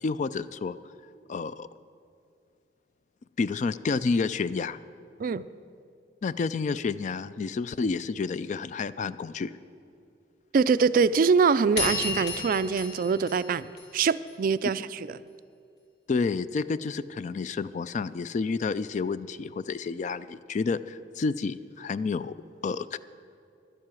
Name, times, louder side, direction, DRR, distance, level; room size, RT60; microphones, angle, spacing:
voice 1, 0.0-0.8 1.3-1.7 3.4-4.8 6.2-9.5 16.1-22.3 22.6-23.0, left 4 dB, 40° left, 15 dB, 0.3 m, -30 dB
voice 2, 10.5-13.7 13.9-15.2, right 5 dB, 50° right, 15 dB, 0.3 m, -24 dB
sound 1, 11.8-14.3, left 3 dB, 80° left, 3.5 m, -33 dB
12.0 x 7.7 x 9.0 m, 2.4 s
head